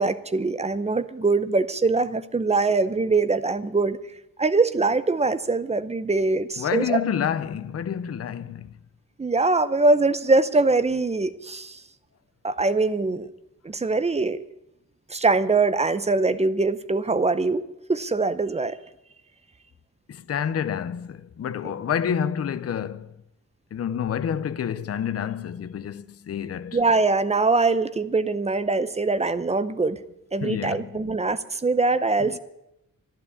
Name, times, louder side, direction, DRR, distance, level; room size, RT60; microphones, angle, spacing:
voice 1, 0.0-4.0 4.4-7.0 9.2-11.8 12.4-13.3 13.6-14.4 15.1-17.6 17.9-18.8 26.7-30.0 30.3-32.4, right 3 dB, 20° right, 0.6 m, -23 dB
voice 2, 6.6-8.7 20.1-23.1 23.7-26.8 30.4-31.0 32.2-32.4, left 8 dB, 50° left, 0.6 m, -28 dB
12.5 x 11.0 x 8.4 m
wide cardioid pair, 160°, 33 cm